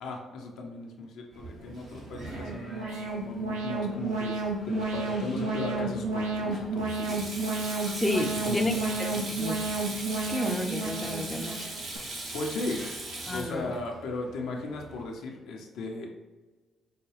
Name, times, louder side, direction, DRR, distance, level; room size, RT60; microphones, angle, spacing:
voice 1, 0.0-7.2 8.2-9.4 12.3-12.8 13.3-16.1, left 2 dB, 70° left, 1 dB, 0.5 m, -36 dB
Sink (filling or washing), 1.3-15.0, right 2 dB, 65° right, 1.1 m, -40 dB
Alarm, 2.1-12.0, right 3 dB, 85° right, 0.5 m, -32 dB
voice 2, 7.9-8.7 9.4-9.6 9.9-11.7 13.3-13.7, left 1 dB, 15° left, 3 dB, 0.5 m, -31 dB
4.7 x 2.2 x 3.3 m, 1.2 s
hypercardioid pair, 45°, 0 cm